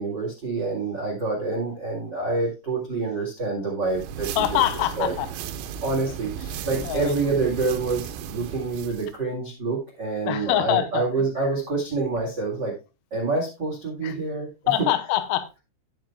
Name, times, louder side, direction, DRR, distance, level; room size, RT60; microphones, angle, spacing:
voice 1, 0.0-4.3 5.0-5.1 5.8-12.7 13.1-14.7, right 3 dB, 55° right, 1.2 m, -27 dB
sound 1, 3.8-9.1, right 8 dB, 80° right, 3.2 m, -35 dB
voice 2, 4.4-5.3 6.8-7.2 10.3-11.0 14.0-14.2 14.7-15.5, left 12 dB, 85° left, 3.5 m, -24 dB
17.5 x 6.1 x 2.2 m
omnidirectional pair, 5.9 m